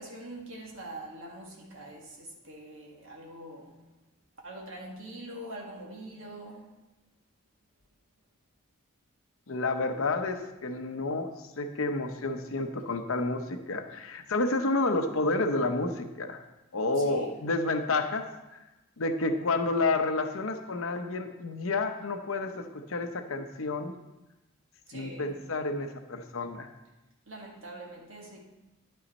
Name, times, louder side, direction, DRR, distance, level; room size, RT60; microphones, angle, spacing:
voice 1, 0.0-3.7 4.4-6.7 17.0-17.4 24.9-25.3 27.3-28.5, right 1 dB, 65° right, -1 dB, 1.8 m, -44 dB
voice 2, 9.5-16.4 16.7-18.3 18.5-18.6 19.0-24.0 24.9-26.7, left 2 dB, 70° left, 7 dB, 0.7 m, -30 dB
10.0 x 5.5 x 4.2 m, 1.0 s
head